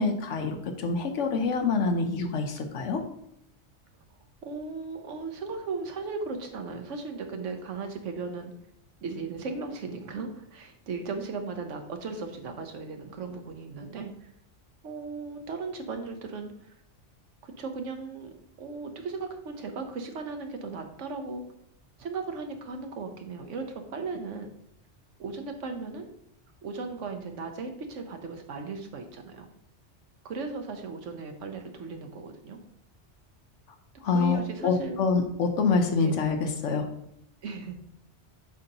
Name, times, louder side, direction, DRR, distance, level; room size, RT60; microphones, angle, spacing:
voice 1, 0.0-3.0 34.0-36.9, left 4 dB, 80° left, 5 dB, 1.1 m, -26 dB
voice 2, 4.4-8.5 9.0-14.3 14.8-16.7 17.4-21.4 22.0-24.5 25.2-26.1 26.6-29.5 30.2-32.6 34.1-35.0 36.0-36.1 37.4-37.8, right 4 dB, 85° right, 5 dB, 1.2 m, -37 dB
7.9 x 2.8 x 5.3 m, 0.73 s
omnidirectional pair, 1.2 m